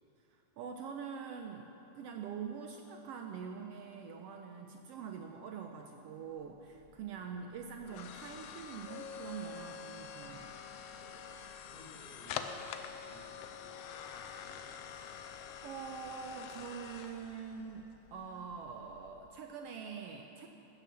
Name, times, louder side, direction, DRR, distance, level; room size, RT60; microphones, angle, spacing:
voice 1, 0.3-1.7 1.9-10.6 14.9-15.3 15.6-20.5, right 6 dB, 75° right, 3 dB, 1.4 m, -44 dB
sound 1, 6.4-19.4, left 7 dB, 80° left, 1.5 m, -47 dB
voice 2, 11.0-14.7, left 1 dB, 15° right, -11 dB, 2.2 m, -58 dB
15.5 x 7.5 x 6.8 m, 3.0 s
omnidirectional pair, 3.3 m